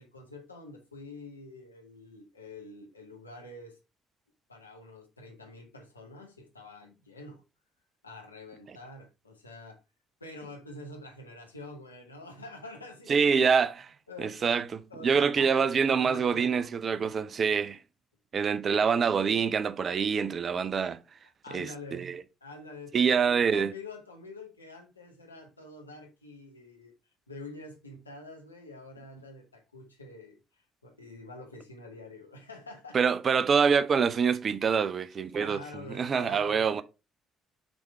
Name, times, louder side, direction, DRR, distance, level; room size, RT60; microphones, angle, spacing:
voice 1, 0.0-3.8 4.5-7.4 8.0-9.8 10.2-13.4 14.1-14.5 14.9-16.7 21.4-22.1 22.4-26.9 27.3-33.2 35.3-36.8, left 2 dB, 85° left, 1.0 m, -46 dB
voice 2, 13.1-13.9 14.2-17.8 18.3-21.0 21.5-22.2 22.9-23.7 32.9-35.6 35.9-36.8, right 6 dB, 40° right, 0.5 m, -26 dB
6.2 x 3.6 x 4.4 m
figure-of-eight pair, 50°, 0 cm